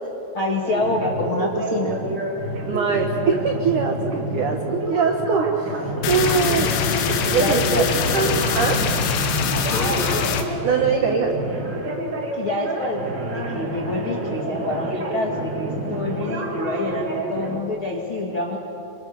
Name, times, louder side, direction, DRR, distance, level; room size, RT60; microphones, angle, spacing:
voice 1, 0.3-1.9 6.6-6.9 7.4-8.0 9.5-10.2 12.3-18.6, left 2 dB, 55° left, -2 dB, 1.4 m, -27 dB
sound 1, 0.6-17.6, right 2 dB, 45° right, 1.4 m, -28 dB
voice 2, 2.7-5.7 6.1-6.7 7.3-8.8 10.6-11.3, right 5 dB, 80° right, 3 dB, 1.8 m, -22 dB
sound 2, 6.0-10.4, left 6 dB, 85° left, 4.3 m, -23 dB
28.5 x 26.5 x 6.8 m, 2.9 s
omnidirectional pair, 6.0 m